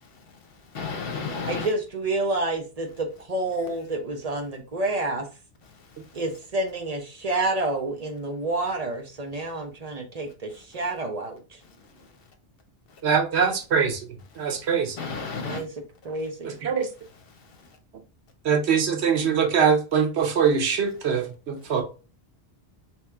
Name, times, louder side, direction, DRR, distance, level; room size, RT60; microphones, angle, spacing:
voice 1, 0.0-1.7 5.7-6.2 10.5-10.6 11.6-12.1 12.9-13.0 14.4-14.6 15.0-15.6 17.3-17.8, left 5 dB, 65° left, 1.0 m, -36 dB
voice 2, 1.5-5.3 6.1-11.4 15.4-15.7 16.0-16.6, right 2 dB, 40° right, 0.9 m, -29 dB
voice 3, 13.0-14.1 14.4-15.0 16.4-16.9 18.4-21.8, right 6 dB, 90° right, 1.1 m, -23 dB
3.3 x 3.1 x 3.4 m
omnidirectional pair, 1.1 m